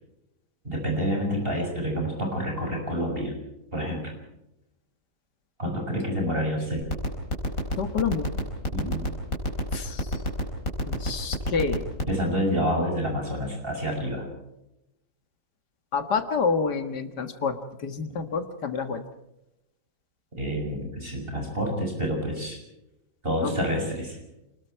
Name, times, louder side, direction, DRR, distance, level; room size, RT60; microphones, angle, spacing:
voice 1, 0.6-3.4 3.7-4.1 5.6-6.8 8.7-9.0 12.1-14.2 20.4-22.6 23.2-24.2, equal, 35° right, 1 dB, 6.8 m, -28 dB
sound 1, 6.8-12.1, left 1 dB, 55° left, 4.8 m, -26 dB
voice 2, 7.8-8.3 9.7-10.2 10.9-12.1 15.9-19.0 23.4-23.7, left 5 dB, 85° left, 8 dB, 2.2 m, -28 dB
29.0 x 21.0 x 4.6 m, 0.90 s
omnidirectional pair, 1.7 m